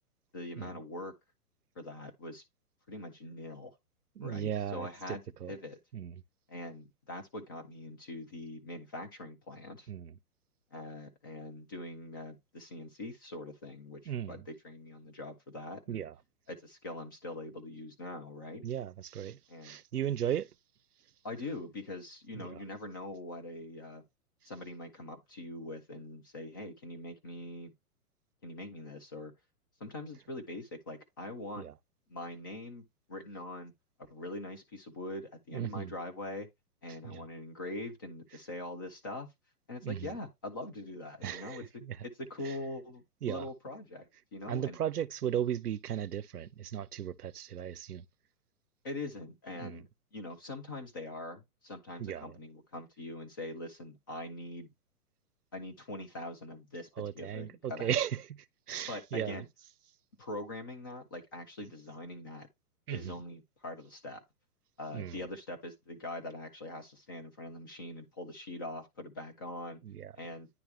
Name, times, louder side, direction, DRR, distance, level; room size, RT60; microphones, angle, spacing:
voice 1, 0.3-1.1 1.8-2.4 2.9-3.8 4.2-5.2 5.5-5.8 6.5-9.9 10.7-16.0 16.5-18.6 19.5-19.8 21.2-24.0 24.4-27.7 28.4-29.3 29.8-31.6 32.1-33.7 34.1-36.5 36.8-39.3 39.7-44.8 48.8-49.9 50.1-54.7 55.5-56.9 57.1-57.9 58.9-59.5 60.2-62.5 62.9-64.2 64.8-69.8 70.1-70.5, left 2 dB, 15° left, 0.3 m, -43 dB
voice 2, 4.2-5.5 5.9-6.1 9.9-10.1 14.1-14.4 15.9-16.1 18.6-20.5 22.3-22.6 31.6-31.7 35.5-35.9 37.0-37.2 39.8-40.1 41.2-42.0 42.4-42.6 43.2-43.5 44.5-48.0 49.6-49.8 52.0-52.3 57.0-59.4 62.9-63.1 64.9-65.2 69.8-70.1, right 10 dB, 90° right, 0.6 m, -36 dB
9.7 x 3.3 x 3.2 m
figure-of-eight pair, 120°, 44 cm